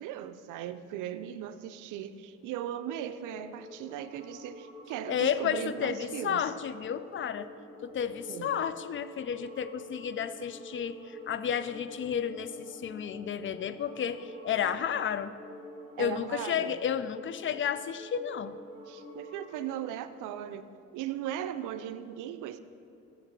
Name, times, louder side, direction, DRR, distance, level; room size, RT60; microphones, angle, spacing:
voice 1, 0.0-6.4 8.3-8.6 16.0-16.7 18.9-22.6, right 10 dB, 90° right, 12 dB, 0.5 m, -38 dB
sound 1, 2.4-20.0, left 1 dB, 5° left, 1.7 m, -48 dB
voice 2, 5.1-7.5 7.8-15.3 16.0-18.6, left 8 dB, 40° left, 14 dB, 0.4 m, -32 dB
6.7 x 5.9 x 6.9 m, 2.6 s
cardioid pair, 90°, 30 cm